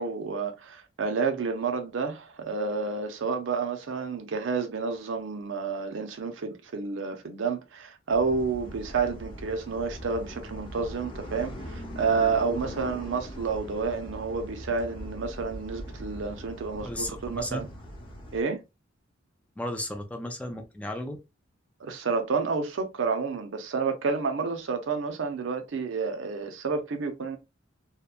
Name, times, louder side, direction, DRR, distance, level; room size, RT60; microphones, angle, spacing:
voice 1, 0.0-17.7 18.3-18.6 21.8-27.4, right 4 dB, 70° right, 0.5 m, -30 dB
sound 1, 8.1-18.4, equal, 25° left, 0.7 m, -41 dB
voice 2, 16.8-17.7 19.6-21.2, left 1 dB, 5° left, 0.4 m, -34 dB
2.8 x 2.2 x 2.3 m
head